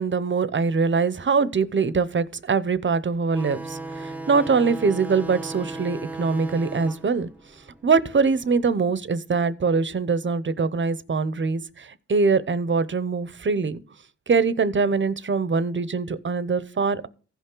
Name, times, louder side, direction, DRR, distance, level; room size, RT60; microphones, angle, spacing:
voice 1, 0.0-7.3 7.8-13.8 14.3-17.1, right 4 dB, 40° right, 0.7 m, -23 dB
sound 1, 3.3-8.5, right 2 dB, 5° right, 0.7 m, -36 dB
15.5 x 5.6 x 3.8 m
cardioid pair, 75°, 30 cm